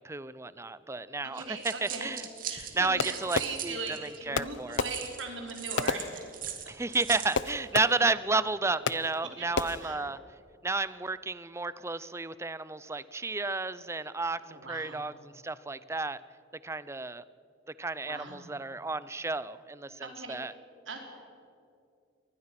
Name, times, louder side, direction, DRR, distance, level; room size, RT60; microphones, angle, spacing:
voice 1, 0.0-2.3 2.7-4.8 6.7-10.2 10.6-16.2 16.6-17.2 17.8-20.5, right 3 dB, 15° right, 17 dB, 0.5 m, -32 dB
voice 2, 1.2-2.1 2.5-6.2 9.4-10.1 14.5-15.0 18.0-18.5 20.0-20.4 20.9-21.0, right 4 dB, 80° right, 3 dB, 3.7 m, -40 dB
sound 1, 1.4-4.2 4.7-7.4, right 9 dB, 50° right, 2.1 m, -40 dB
Fireworks, 3.0-4.0 4.3-6.7 7.3-8.3 8.9-9.3 9.6-10.1, left 4 dB, 70° left, 0.7 m, -34 dB
24.0 x 19.5 x 5.9 m, 2.5 s
head